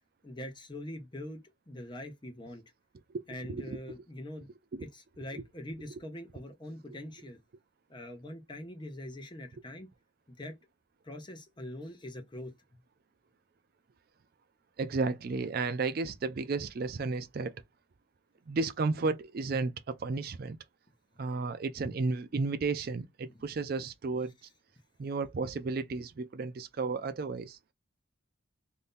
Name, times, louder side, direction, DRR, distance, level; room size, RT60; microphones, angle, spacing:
voice 1, 0.2-1.4 1.7-2.6 3.3-4.5 4.8-7.4 7.9-9.9 10.3-10.5 11.0-12.5 21.8-21.9 23.3-23.4, left 1 dB, 20° left, 0.7 m, -43 dB
voice 2, 3.4-3.8 4.7-4.9 5.3-5.4 14.8-17.5 18.5-20.6 21.2-24.3 25.0-27.6, right 3 dB, 45° right, 0.4 m, -33 dB
2.6 x 2.6 x 3.5 m
head